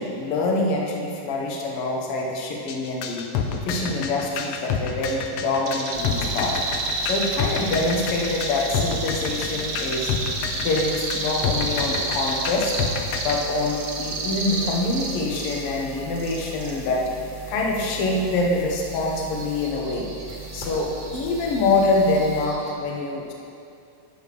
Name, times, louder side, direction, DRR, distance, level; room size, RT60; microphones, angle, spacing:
voice 1, 0.0-3.3 3.6-6.5 7.0-10.1 10.5-12.7 13.2-17.0 17.5-23.3, left 2 dB, 60° left, -1 dB, 1.8 m, -25 dB
sound 1, 2.7-13.4, left 7 dB, 75° left, 1.6 m, -28 dB
sound 2, 5.7-15.7 16.0-17.2 18.7-22.7, right 3 dB, 70° right, 1.0 m, -31 dB
sound 3, 5.9-22.5, right 3 dB, 15° left, 1.8 m, -40 dB
11.5 x 8.2 x 3.4 m, 2.6 s
omnidirectional pair, 3.4 m